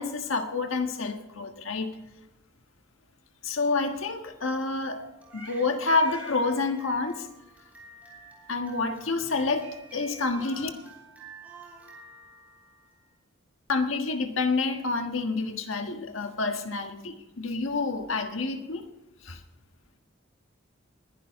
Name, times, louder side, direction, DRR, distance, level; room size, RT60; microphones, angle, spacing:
voice 1, 0.0-1.9 3.4-5.0 5.3-7.3 8.5-10.7 13.7-18.8 19.2-19.4, left 3 dB, 80° left, 5 dB, 1.5 m, -28 dB
Crying sobbing, 4.9-13.1, right 2 dB, 10° right, 3.4 m, -49 dB
20.5 x 11.0 x 3.7 m, 0.92 s
head